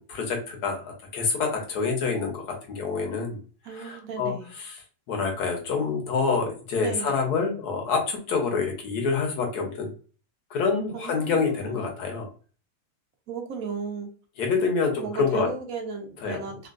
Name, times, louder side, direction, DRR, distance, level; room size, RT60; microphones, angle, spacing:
voice 1, 0.0-3.4 3.7-4.8 5.1-9.9 10.5-12.3 14.4-15.5 16.2-16.5, left 5 dB, 90° left, 2 dB, 1.4 m, -27 dB
voice 2, 3.6-4.5 6.8-7.2 10.9-11.7 13.3-14.1 14.9-16.7, right 5 dB, 70° right, 3 dB, 1.0 m, -35 dB
3.6 x 2.3 x 2.4 m, 0.39 s
omnidirectional pair, 1.6 m